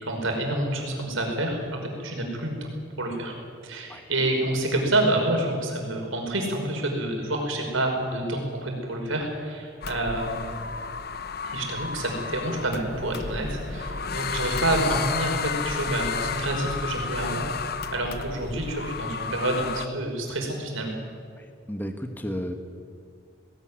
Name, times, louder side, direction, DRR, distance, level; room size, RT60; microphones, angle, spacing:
voice 1, 0.0-2.7 3.0-3.3 3.6-10.5 11.4-20.9, right 1 dB, 70° right, 1 dB, 5.2 m, -28 dB
sound 1, 9.8-19.9, left 5 dB, 45° left, 0.8 m, -32 dB
voice 2, 21.4-22.6, equal, 10° left, 6 dB, 1.4 m, -33 dB
19.0 x 18.5 x 9.8 m, 2.2 s
head